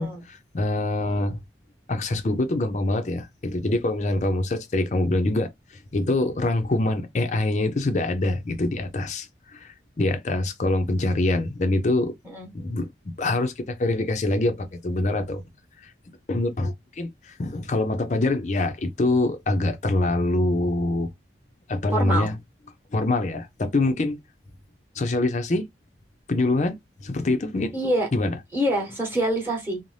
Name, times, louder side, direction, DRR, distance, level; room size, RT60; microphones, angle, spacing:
voice 1, 0.0-1.4 1.9-5.5 5.9-12.1 12.5-12.9 13.2-15.4 16.3-21.1 21.7-22.3 22.9-24.2 25.0-25.7 26.3-27.7 28.1-28.4, left 2 dB, 40° left, 0.5 m, -24 dB
voice 2, 21.9-22.3 27.7-28.1 28.5-29.8, right 1 dB, 10° right, 0.9 m, -25 dB
2.6 x 2.1 x 3.2 m
head